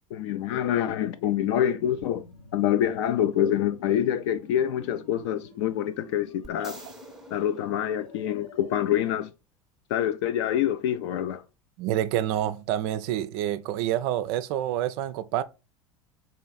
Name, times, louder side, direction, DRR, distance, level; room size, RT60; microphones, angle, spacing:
voice 1, 0.1-2.2 2.5-6.8 7.3-9.3 9.9-11.4, left 10 dB, 55° left, 0.4 m, -26 dB
sound 1, 1.8-9.2, left 2 dB, 90° left, 1.2 m, -48 dB
sound 2, 6.4-8.7 12.1-12.2, right 2 dB, 5° right, 0.8 m, -48 dB
voice 2, 11.8-15.4, right 12 dB, 50° right, 0.4 m, -27 dB
3.8 x 3.1 x 3.9 m
figure-of-eight pair, 75°, 17 cm